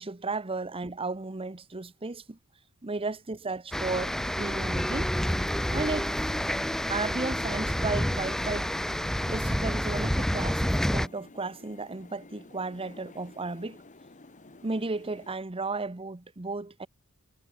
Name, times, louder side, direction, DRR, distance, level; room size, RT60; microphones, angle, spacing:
voice 1, 0.0-2.4 2.8-5.1 5.7-6.1 6.9-8.7 9.3-13.8 14.6-16.9, right 3 dB, 25° right, 0.9 m, -34 dB
sound 1, 3.7-11.1, equal, ahead, 0.5 m, -28 dB
sound 2, 4.9-15.4, left 2 dB, 35° left, 1.6 m, -52 dB
head